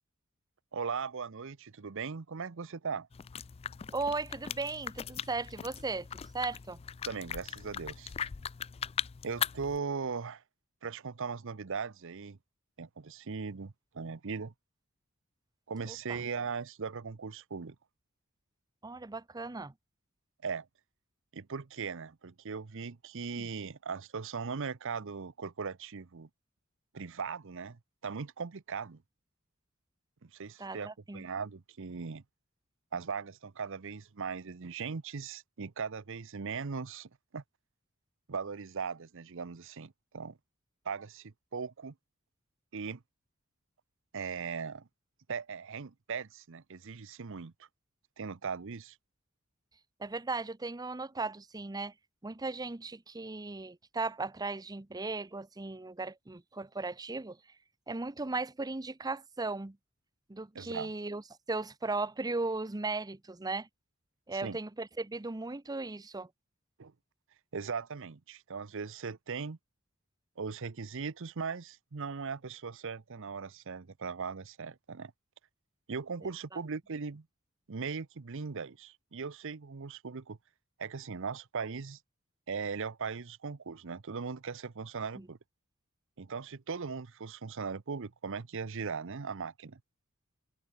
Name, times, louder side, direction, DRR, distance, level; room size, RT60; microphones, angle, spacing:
voice 1, 0.7-3.1 7.1-8.1 9.2-10.4 10.8-12.4 12.8-14.5 15.7-17.8 20.4-20.7 21.3-26.3 26.9-29.0 30.2-32.2 32.9-37.4 38.3-40.4 40.8-41.9 42.7-43.0 44.1-44.9 45.3-47.5 48.2-49.0 60.5-60.9 64.3-64.6 66.8-66.9 67.5-69.6 70.4-75.1 75.9-77.2 77.7-80.4 80.8-82.0 82.5-85.4 86.2-89.8, right 5 dB, 65° right, 0.7 m, -39 dB
sound 1, 3.1-9.8, left 8 dB, 30° left, 0.3 m, -39 dB
voice 2, 3.9-6.8 15.9-16.2 18.8-19.7 23.4-23.5 30.6-31.3 50.0-51.9 52.2-57.4 57.9-59.8 60.3-61.2 61.5-63.7 64.3-66.3 76.2-76.6 85.2-85.3, right 3 dB, 20° right, 0.7 m, -37 dB
head